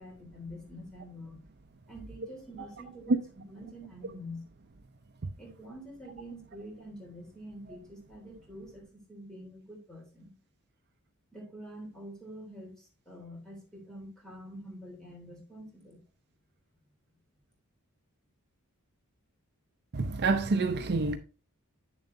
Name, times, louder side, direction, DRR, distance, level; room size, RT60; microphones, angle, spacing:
voice 1, 0.0-1.4 1.9-3.2 3.5-4.4 5.4-10.3 11.3-16.0, equal, 5° left, 3.2 m, -46 dB
voice 2, 19.9-21.2, right 3 dB, 50° right, 0.6 m, -27 dB
9.7 x 7.1 x 2.6 m
head